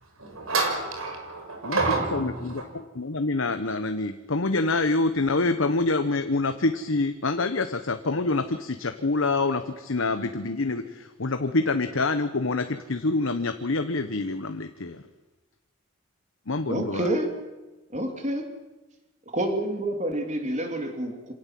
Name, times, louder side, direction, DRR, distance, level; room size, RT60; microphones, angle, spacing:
voice 1, 0.2-2.6, right 3 dB, 85° right, 3 dB, 6.1 m, -28 dB
voice 2, 2.1-15.0 16.5-17.1, left 3 dB, 70° left, 8 dB, 1.1 m, -26 dB
voice 3, 16.7-17.3 17.9-18.5 19.3-21.3, right 1 dB, 35° right, 4 dB, 3.2 m, -28 dB
26.0 x 18.0 x 7.7 m, 1.1 s
head